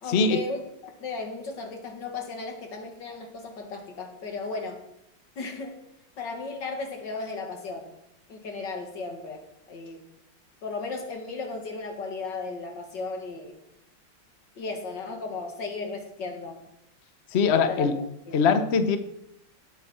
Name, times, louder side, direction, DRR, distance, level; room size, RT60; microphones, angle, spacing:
voice 1, 0.0-4.8 5.4-5.8 6.2-7.9 8.3-10.1 10.6-13.6 14.6-16.6 17.5-18.0 18.3-18.4, left 3 dB, 65° left, 4 dB, 2.5 m, -35 dB
voice 2, 17.3-17.9 18.3-19.0, left 5 dB, 50° left, 9 dB, 0.9 m, -21 dB
16.0 x 9.1 x 4.3 m, 0.82 s
omnidirectional pair, 2.1 m